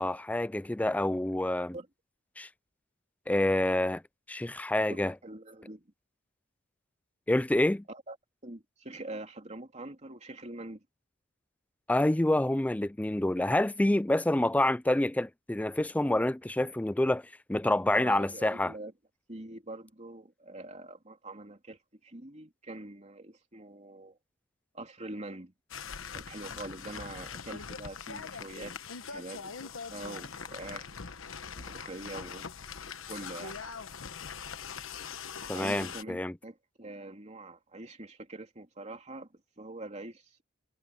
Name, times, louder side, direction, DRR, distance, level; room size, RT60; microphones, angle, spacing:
voice 1, 0.0-1.7 2.4-2.5 3.3-4.0 4.3-5.1 7.3-7.8 11.9-18.7 35.5-36.3, left 1 dB, 5° left, 0.4 m, -27 dB
voice 2, 4.9-5.8 7.9-8.2 8.4-10.8 17.9-18.9 19.3-24.2 24.7-25.5 26.1-28.8 29.1-30.9 31.6-32.5 33.1-33.6 35.5-39.3 39.6-40.4, right 2 dB, 35° right, 3.1 m, -44 dB
sound 1, 25.7-36.0, left 6 dB, 75° left, 1.1 m, -42 dB
head